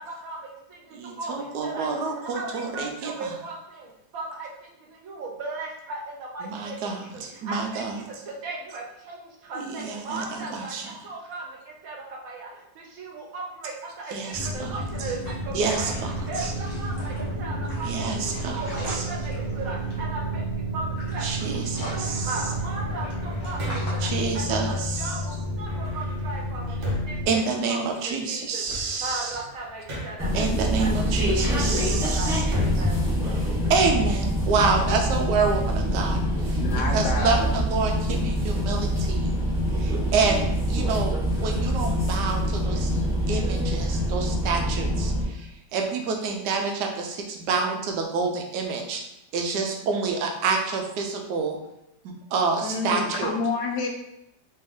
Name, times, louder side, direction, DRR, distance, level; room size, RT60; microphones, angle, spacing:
voice 1, 0.0-16.0 16.2-33.0, right 3 dB, 60° right, -1 dB, 1.2 m, -37 dB
voice 2, 0.9-3.3 6.4-8.0 9.6-10.9 14.1-14.8 15.5-16.1 16.4-16.5 17.8-18.6 18.9-19.1 21.2-22.3 24.0-25.1 27.3-29.4 30.3-32.4 33.3-33.4 33.7-36.6 36.9-39.3 39.8-42.9 43.3-49.0 49.3-51.6 52.3-53.3, right 4 dB, 85° right, 2 dB, 1.3 m, -28 dB
sound 1, 14.3-27.3, right 1 dB, 20° left, 0.9 m, -31 dB
sound 2, 22.5-24.2 25.6-28.1 28.5-30.4 30.9-34.0, left 1 dB, 45° right, 0.7 m, -37 dB
sound 3, 30.2-45.3, equal, 5° right, 0.6 m, -25 dB
voice 3, 36.6-37.5 52.6-53.9, left 4 dB, 75° left, 1 dB, 1.2 m, -28 dB
3.3 x 3.1 x 3.5 m, 0.83 s
omnidirectional pair, 1.8 m